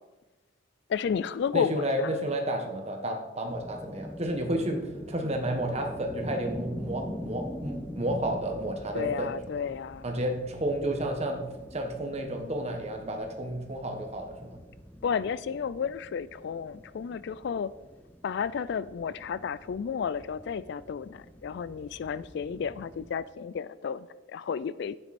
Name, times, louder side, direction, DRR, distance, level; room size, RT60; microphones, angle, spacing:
voice 1, 0.9-2.2 8.9-10.1 15.0-17.7 18.2-25.0, left 6 dB, 55° left, 17 dB, 0.3 m, -32 dB
voice 2, 1.5-4.8 5.1-9.3 10.0-11.4 11.7-14.6, right 1 dB, 30° right, 3 dB, 1.4 m, -31 dB
sound 1, 3.5-23.2, equal, 10° left, 0.7 m, -44 dB
11.0 x 9.3 x 4.2 m, 1.2 s
head